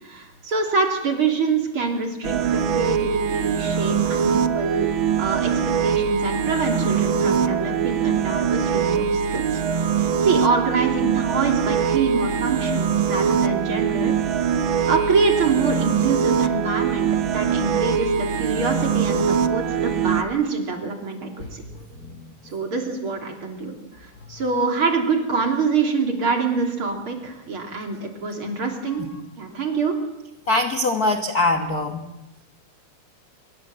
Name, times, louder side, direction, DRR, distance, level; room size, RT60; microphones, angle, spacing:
voice 1, 0.0-4.9 5.2-5.5 5.8-9.6 9.9-14.1 14.9-21.6 22.4-29.0 29.4-30.0, right 4 dB, 40° right, 3 dB, 3.8 m, -25 dB
sound 1, 2.2-20.2, right 7 dB, 65° right, 1.2 m, -22 dB
voice 2, 22.0-22.3 30.5-32.1, left 2 dB, 45° left, 5 dB, 1.3 m, -22 dB
25.0 x 22.5 x 7.8 m, 0.97 s
omnidirectional pair, 3.6 m